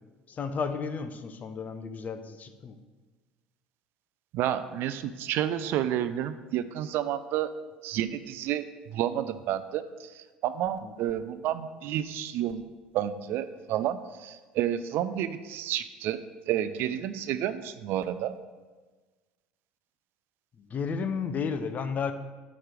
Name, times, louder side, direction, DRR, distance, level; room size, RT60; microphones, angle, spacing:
voice 1, 0.3-2.8 10.8-10.9 20.6-22.1, left 5 dB, 35° left, 10 dB, 0.6 m, -33 dB
voice 2, 4.3-7.5 7.8-12.6 12.9-16.2 16.5-18.4, right 11 dB, 55° right, 12 dB, 0.4 m, -30 dB
8.7 x 3.2 x 5.0 m, 1.3 s
hypercardioid pair, 65°, 4 cm